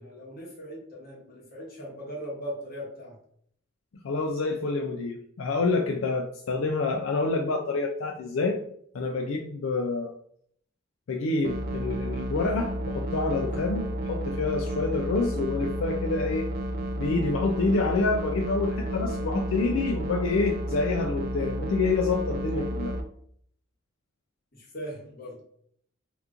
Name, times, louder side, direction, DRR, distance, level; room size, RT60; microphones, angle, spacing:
voice 1, 0.0-3.2 24.5-25.4, equal, 50° left, -3 dB, 1.2 m, -39 dB
voice 2, 4.0-8.6 8.9-10.1 11.1-16.5 17.0-22.9, left 3 dB, 80° left, 2 dB, 0.4 m, -27 dB
sound 1, 11.4-23.0, right 1 dB, 50° right, 0.4 m, -32 dB
2.9 x 2.5 x 3.5 m, 0.64 s
head